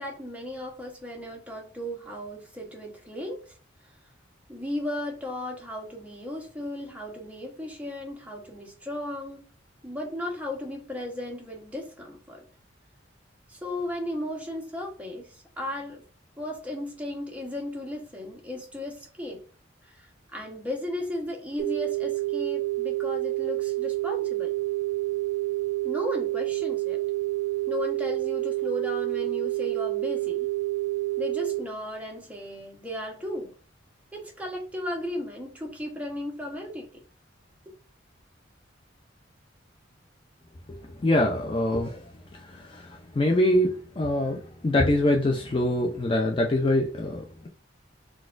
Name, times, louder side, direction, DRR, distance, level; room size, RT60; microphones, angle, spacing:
voice 1, 0.0-3.6 4.5-9.4 9.8-12.4 13.5-16.0 16.4-19.4 19.8-24.5 25.8-27.0 27.7-30.5 31.2-33.5 34.1-37.0, left 1 dB, 10° right, -1 dB, 0.9 m, -35 dB
sound 1, 21.6-31.6, right 19 dB, 70° right, 0.7 m, -28 dB
voice 2, 40.7-42.0 42.4-47.5, left 1 dB, 25° left, 1 dB, 0.4 m, -24 dB
4.0 x 2.3 x 2.4 m, 0.38 s
head